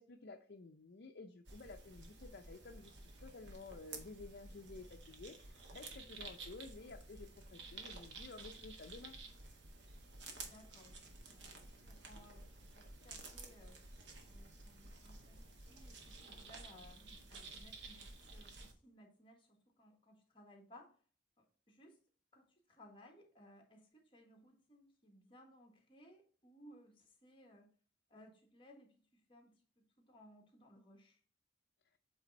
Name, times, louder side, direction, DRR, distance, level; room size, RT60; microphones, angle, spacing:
voice 1, 0.0-9.1, left 3 dB, 60° left, 4 dB, 0.5 m, -53 dB
sound 1, 1.5-18.7, right 3 dB, 75° right, 1.4 m, -53 dB
voice 2, 10.4-13.8 14.2-20.9 21.4-22.0 22.3-27.7 28.1-31.2, equal, 30° left, 2 dB, 1.5 m, -62 dB
8.0 x 3.4 x 4.0 m, 0.43 s
head